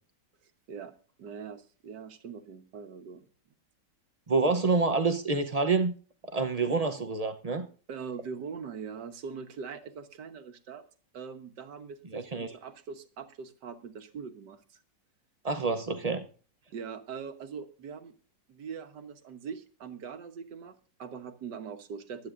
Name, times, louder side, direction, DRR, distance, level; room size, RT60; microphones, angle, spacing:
voice 1, 0.4-0.9 1.2-3.2 7.9-10.8 11.1-14.8 16.7-18.1 18.5-22.3, right 6 dB, 70° right, 7 dB, 1.8 m, -42 dB
voice 2, 4.3-5.9 6.3-7.7 12.1-12.5 15.4-16.3, right 3 dB, 90° right, 7 dB, 0.3 m, -27 dB
24.5 x 9.5 x 2.5 m, 0.40 s
omnidirectional pair, 2.0 m